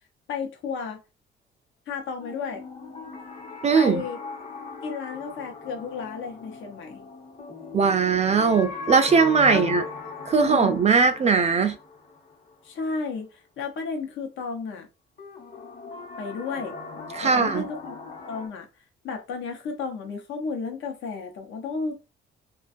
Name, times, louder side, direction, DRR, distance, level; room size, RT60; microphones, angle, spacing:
voice 1, 0.3-1.0 1.9-2.6 3.7-4.2 4.8-7.1 9.5-9.8 10.4-10.8 12.6-14.9 16.2-16.8 17.2-18.0 18.3-18.7 19.0-21.9, left 5 dB, 75° left, 0.7 m, -33 dB
sound 1, 2.2-13.1 15.2-18.5, left 4 dB, 40° left, 1.1 m, -39 dB
voice 2, 3.6-4.0 7.7-9.8 10.3-11.8 17.1-17.6, right 5 dB, 35° right, 0.4 m, -20 dB
2.4 x 2.3 x 2.5 m
cardioid pair, 90°, 20 cm